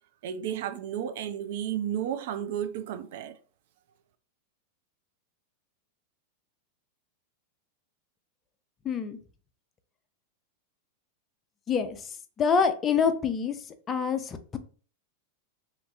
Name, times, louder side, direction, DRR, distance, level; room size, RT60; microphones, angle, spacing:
voice 1, 0.2-3.4, right 9 dB, 55° right, 0.3 m, -32 dB
voice 2, 8.9-9.2 11.7-12.0 12.4-13.5 13.9-14.2, left 6 dB, 25° left, 0.4 m, -25 dB
2.8 x 2.5 x 2.5 m
figure-of-eight pair, 90°, 0 cm